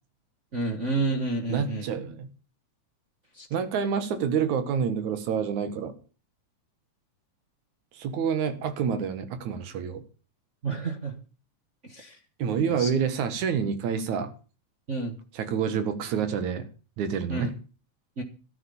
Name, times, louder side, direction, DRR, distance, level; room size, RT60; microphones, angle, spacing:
voice 1, 0.5-1.9 3.3-3.5 10.6-11.1 11.8-12.2 12.7-12.9 14.9-15.2 17.3-17.5 18.2-18.3, right 3 dB, 30° right, 3 dB, 1.4 m, -30 dB
voice 2, 1.5-2.3 3.5-5.9 7.9-10.0 12.4-14.3 15.3-16.7 17.0-17.5, right 7 dB, 80° right, 10 dB, 2.9 m, -28 dB
13.5 x 9.4 x 7.1 m, 0.37 s
omnidirectional pair, 3.3 m